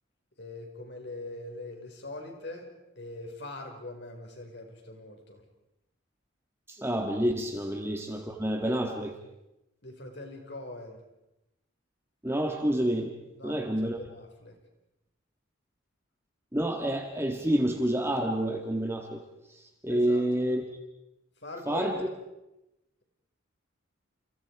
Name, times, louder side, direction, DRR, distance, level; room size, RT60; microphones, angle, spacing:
voice 1, 0.4-2.7 3.0-5.4 6.8-7.0 9.8-11.0 13.4-14.6 19.9-20.5 21.4-22.1, left 2 dB, 55° left, 3 dB, 5.4 m, -42 dB
voice 2, 6.7-9.2 12.2-13.1 13.4-14.0 16.5-19.2 19.5-20.6 21.7-22.1, right 1 dB, 10° right, 3 dB, 1.8 m, -28 dB
29.5 x 28.5 x 4.9 m, 0.93 s
head